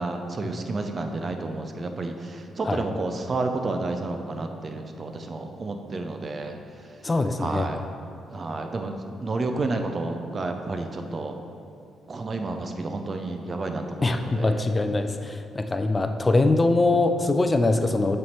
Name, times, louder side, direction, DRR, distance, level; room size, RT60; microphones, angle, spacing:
voice 1, 0.0-6.6 7.4-7.8 8.3-8.9 9.2-11.4 12.1-14.7, right 3 dB, 40° right, 5 dB, 0.5 m, -30 dB
voice 2, 7.0-7.7 14.0-18.2, left 2 dB, 25° left, 7 dB, 0.5 m, -23 dB
7.1 x 3.3 x 4.4 m, 2.5 s
supercardioid pair, 60°, 0 cm